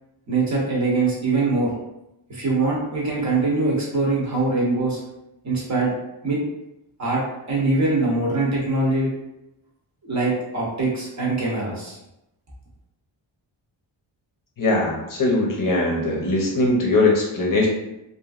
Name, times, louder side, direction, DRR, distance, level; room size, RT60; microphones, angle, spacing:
voice 1, 0.3-1.7 2.3-5.0 5.4-5.9 6.2-6.4 7.0-7.2 7.5-9.1 10.0-12.0, right 3 dB, 35° right, -5 dB, 0.8 m, -22 dB
voice 2, 14.6-17.7, left 2 dB, 45° left, -2 dB, 0.6 m, -20 dB
2.9 x 2.6 x 2.4 m, 0.89 s
wide cardioid pair, 155°, 47 cm